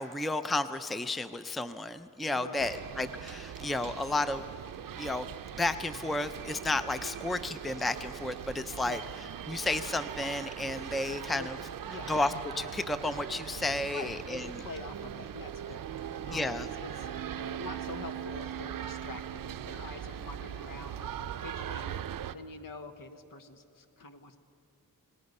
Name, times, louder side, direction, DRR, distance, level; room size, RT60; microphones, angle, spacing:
voice 1, 0.0-4.5 5.0-9.0 9.5-11.6 12.1-14.5 16.3-16.7, left 2 dB, ahead, 11 dB, 0.5 m, -32 dB
voice 2, 2.3-2.7 8.8-9.1 11.4-11.5 11.9-12.1 13.9-24.4, left 3 dB, 70° left, 7 dB, 1.4 m, -46 dB
sound 1, 2.6-22.3, right 9 dB, 70° right, 0.6 m, -40 dB
sound 2, 12.7-15.0 16.4-18.6 19.5-21.6, left 2 dB, 35° left, 2.6 m, -60 dB
28.0 x 19.0 x 5.4 m, 2.5 s
wide cardioid pair, 105°, 35 cm